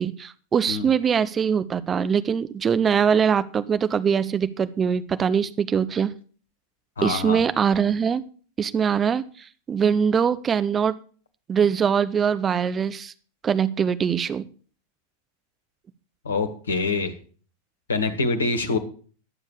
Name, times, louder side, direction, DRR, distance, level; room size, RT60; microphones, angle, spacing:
voice 1, 0.0-6.1 7.0-8.2 8.6-11.0 11.5-13.1 13.4-14.4, right 7 dB, 20° right, 12 dB, 0.7 m, -22 dB
voice 2, 7.0-7.4 16.2-17.1 17.9-18.8, left 3 dB, 70° left, 9 dB, 1.5 m, -25 dB
11.5 x 7.3 x 6.5 m, 0.41 s
figure-of-eight pair, 90°, 0 cm